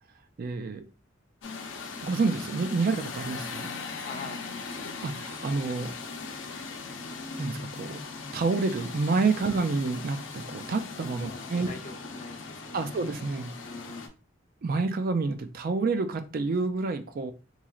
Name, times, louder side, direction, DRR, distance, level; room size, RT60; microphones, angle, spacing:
voice 1, 0.4-0.8 2.0-3.7 5.0-5.9 7.4-8.0 8.3-11.7 12.7-13.5 14.6-17.3, right 4 dB, 50° right, 0.4 m, -28 dB
sound 1, 1.4-14.1, left 4 dB, 75° left, 0.7 m, -39 dB
voice 2, 4.0-4.9 9.5-9.7 11.2-13.0 13.6-14.1, left 3 dB, 40° left, 0.6 m, -44 dB
3.8 x 3.1 x 2.3 m
head